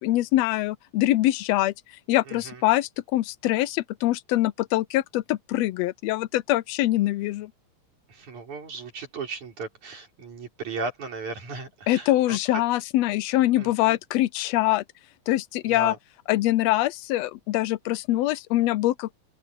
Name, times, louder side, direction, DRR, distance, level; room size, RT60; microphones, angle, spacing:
voice 1, 0.0-1.7 2.1-7.5 11.9-14.8 15.3-15.9 16.3-19.2, left 16 dB, 80° left, 1.6 m, -24 dB
voice 2, 2.3-2.6 8.1-12.4 13.6-14.0 15.7-16.0, right 4 dB, 80° right, 6.7 m, -36 dB
open air
omnidirectional pair, 3.3 m